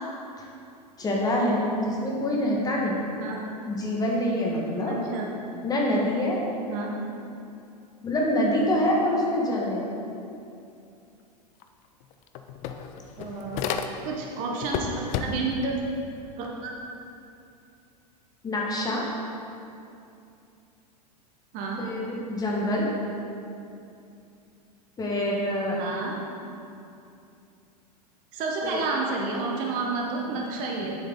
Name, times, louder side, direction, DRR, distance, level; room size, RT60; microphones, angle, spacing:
voice 1, 1.0-3.0 3.7-5.0 5.6-6.4 8.0-9.9 18.4-19.0 21.8-22.9 25.0-25.8 28.6-28.8, left 1 dB, 20° left, -3 dB, 1.7 m, -25 dB
voice 2, 4.8-5.3 6.7-6.9 13.2-13.6 14.0-15.7 16.4-16.7 21.5-21.8 25.7-26.2 28.3-31.0, right 3 dB, 40° right, -1 dB, 1.4 m, -30 dB
sound 1, 11.6-11.7 12.0-14.3 14.6-15.6, left 7 dB, 35° left, 0.6 m, -32 dB
9.2 x 7.9 x 3.9 m, 2.6 s
figure-of-eight pair, 90°, 21 cm